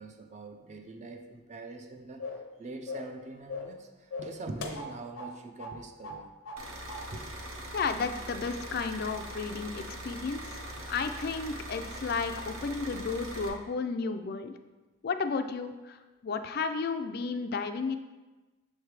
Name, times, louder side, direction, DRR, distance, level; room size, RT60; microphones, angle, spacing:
voice 1, 0.0-6.3 7.1-7.3 10.7-10.8, right 3 dB, 35° right, 5 dB, 0.4 m, -44 dB
sound 1, 2.2-2.5 2.9-3.2 3.5-3.8 4.1-5.3 5.6-5.8 6.0-6.6 6.9-7.1, left 3 dB, 85° left, 0.7 m, -39 dB
sound 2, 6.6-13.5, right 1 dB, 85° right, 0.8 m, -42 dB
voice 2, 7.7-10.6 10.9-14.6 15.0-18.0, left 4 dB, 50° left, 8 dB, 0.3 m, -33 dB
6.5 x 3.3 x 4.7 m, 1.2 s
head